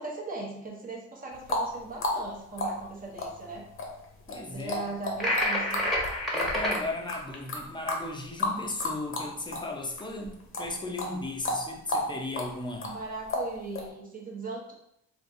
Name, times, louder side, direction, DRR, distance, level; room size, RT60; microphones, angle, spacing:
voice 1, 0.0-3.7 4.5-5.9 12.9-14.7, right 3 dB, 30° right, -2 dB, 0.8 m, -38 dB
sound 1, 1.3-9.7 10.0-13.9, left 2 dB, 45° left, 0.8 m, -33 dB
voice 2, 4.3-4.9 6.3-13.0, left 2 dB, 15° left, 1 dB, 0.6 m, -36 dB
sound 2, 5.2-6.8, left 1 dB, ahead, 1.0 m, -27 dB
3.4 x 2.5 x 2.6 m, 0.77 s
cardioid pair, 90°, 30 cm